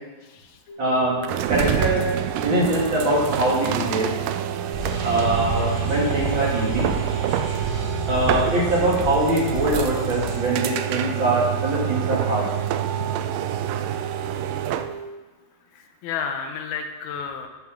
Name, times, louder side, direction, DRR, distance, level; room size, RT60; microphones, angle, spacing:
sound 1, 0.7-15.1, right 5 dB, 70° left, 3.5 m, -36 dB
voice 1, 0.8-1.2 1.5-2.1 2.4-4.1 5.0-6.9 8.1-12.5 13.0-13.1, right 1 dB, 35° right, -4 dB, 2.6 m, -23 dB
sound 2, 1.2-15.0, right 11 dB, 85° right, 1.9 m, -27 dB
sound 3, 4.7-10.4, right 1 dB, 15° right, 4.0 m, -31 dB
voice 2, 15.8-17.5, left 6 dB, 85° left, 5 dB, 2.9 m, -32 dB
13.0 x 7.9 x 3.7 m, 1.2 s
omnidirectional pair, 4.3 m